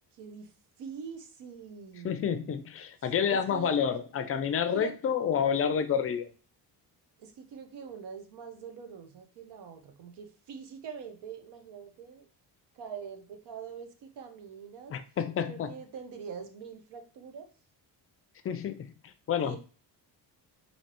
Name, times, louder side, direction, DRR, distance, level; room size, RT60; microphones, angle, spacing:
voice 1, 0.1-2.7 3.0-3.8 4.7-4.9 7.2-12.3 12.7-15.0 15.5-17.5 19.4-19.6, right 6 dB, 70° right, 0.9 m, -44 dB
voice 2, 2.0-6.3 14.9-15.7 18.4-18.9 19.3-19.6, left 7 dB, 35° left, 0.4 m, -29 dB
4.5 x 2.9 x 2.9 m
cardioid pair, 130°, 42 cm